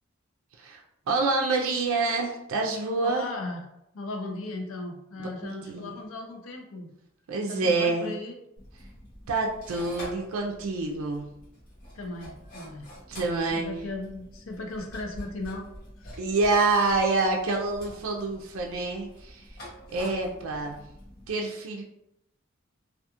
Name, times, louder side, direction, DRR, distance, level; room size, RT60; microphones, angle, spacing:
voice 1, 1.1-3.3 5.2-5.9 7.3-8.2 9.3-11.3 13.1-13.7 16.2-19.4 19.9-20.8 21.3-21.8, right 3 dB, 75° right, 0 dB, 0.4 m, -27 dB
voice 2, 3.0-3.6 3.9-6.9 7.5-8.4 11.9-12.9 13.4-15.7 16.0-16.2, left 2 dB, 75° left, 2 dB, 0.5 m, -37 dB
sound 1, 8.6-21.3, equal, 45° left, 0.9 m, -46 dB
2.4 x 2.3 x 2.8 m, 0.81 s
head